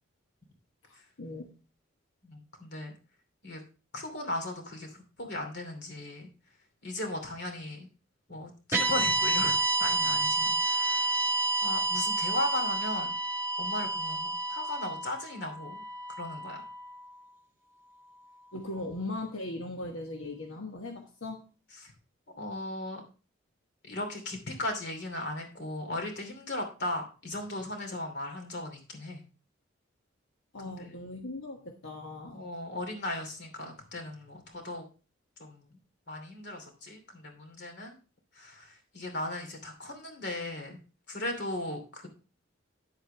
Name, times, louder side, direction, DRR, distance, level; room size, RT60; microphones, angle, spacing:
voice 1, 0.8-1.5 18.5-21.4 30.5-32.4, left 2 dB, 85° left, 2 dB, 1.3 m, -39 dB
voice 2, 2.2-2.9 3.4-3.6 3.9-6.3 6.8-7.9 8.3-11.2 11.6-13.1 13.6-15.8 16.2-16.7 21.7-21.9 22.4-23.0 23.8-29.2 30.6-30.9 32.3-34.8 35.4-35.7 36.1-38.0 38.3-40.8 41.1-42.1, left 1 dB, 55° left, 4 dB, 2.7 m, -37 dB
sound 1, 8.7-17.0, right 2 dB, 15° right, 1.5 m, -29 dB
9.8 x 7.9 x 3.3 m, 0.34 s
head